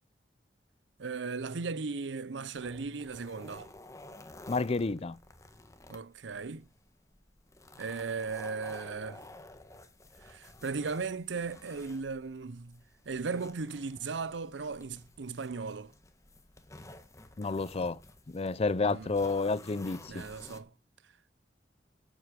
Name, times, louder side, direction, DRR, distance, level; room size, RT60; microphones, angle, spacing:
voice 1, 1.0-3.7 5.9-6.6 7.8-9.2 10.2-12.8 13.1-15.9 18.8-19.1 20.1-20.7, right 4 dB, 80° right, 0.7 m, -37 dB
sound 1, 2.6-20.6, left 2 dB, 15° left, 1.4 m, -52 dB
voice 2, 4.5-5.2 17.4-18.0 18.3-20.3, left 3 dB, 35° left, 0.5 m, -30 dB
8.3 x 7.7 x 8.3 m
head